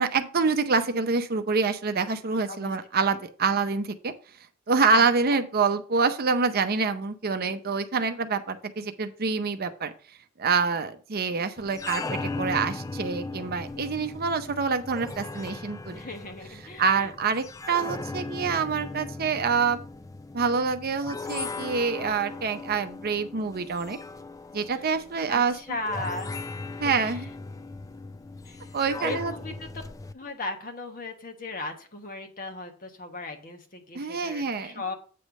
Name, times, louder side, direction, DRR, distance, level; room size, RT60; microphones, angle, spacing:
voice 1, 0.0-4.1 4.7-9.9 10.4-16.0 16.8-19.8 20.3-24.0 24.5-25.5 26.8-27.3 28.7-29.3 33.9-34.8, right 5 dB, 45° right, 9 dB, 0.6 m, -26 dB
voice 2, 4.8-5.4 15.9-17.1 24.7-24.8 25.3-26.4 26.8-27.3 28.4-28.6 29.0-29.7 30.1-34.9, left 2 dB, 40° left, 5 dB, 1.2 m, -37 dB
sound 1, 11.6-30.1, left 3 dB, 15° left, 0.3 m, -38 dB
8.5 x 3.3 x 6.2 m, 0.41 s
head